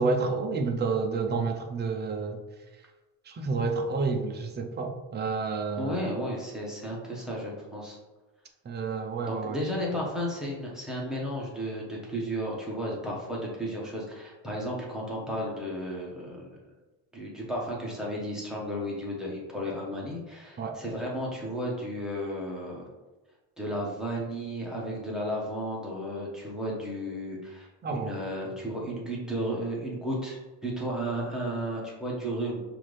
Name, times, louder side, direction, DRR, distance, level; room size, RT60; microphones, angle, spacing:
voice 1, 0.0-2.4 3.3-6.1 8.7-9.6 20.6-20.8 27.8-28.1, right 4 dB, 25° right, 4 dB, 0.3 m, -29 dB
voice 2, 5.8-8.0 9.3-16.6 17.1-22.9 23.6-32.6, equal, ahead, -4 dB, 0.8 m, -33 dB
5.6 x 2.6 x 3.2 m, 1.2 s
cardioid pair, 155°, 47 cm